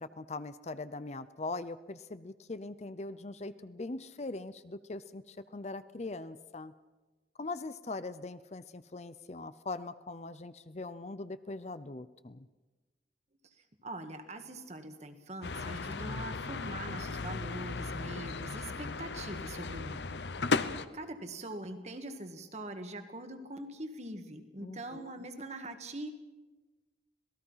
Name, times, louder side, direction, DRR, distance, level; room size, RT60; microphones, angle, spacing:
voice 1, 0.0-6.7 7.4-12.5 24.6-25.3, left 3 dB, 40° left, 13 dB, 0.6 m, -41 dB
voice 2, 13.8-20.2 20.9-26.1, right 1 dB, 40° right, 7 dB, 1.8 m, -43 dB
sound 1, 15.4-20.9, left 4 dB, 80° left, 0.9 m, -36 dB
26.5 x 19.0 x 5.7 m, 1.2 s
head